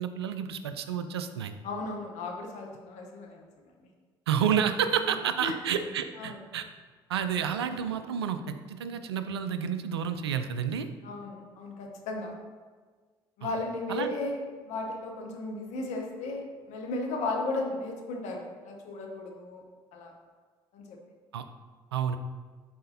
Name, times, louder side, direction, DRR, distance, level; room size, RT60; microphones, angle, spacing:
voice 1, 0.0-1.5 4.3-6.6 7.1-10.9 13.4-13.5 13.9-14.1 21.3-21.5 21.9-22.2, right 8 dB, 85° right, 10 dB, 0.4 m, -30 dB
voice 2, 1.6-3.4 3.8-3.9 5.0-5.6 6.2-6.4 11.0-12.3 13.4-19.6 19.9-20.1 20.7-21.0, left 2 dB, 65° left, 1 dB, 1.2 m, -35 dB
11.0 x 4.2 x 2.8 m, 1.5 s
hypercardioid pair, 50°, 13 cm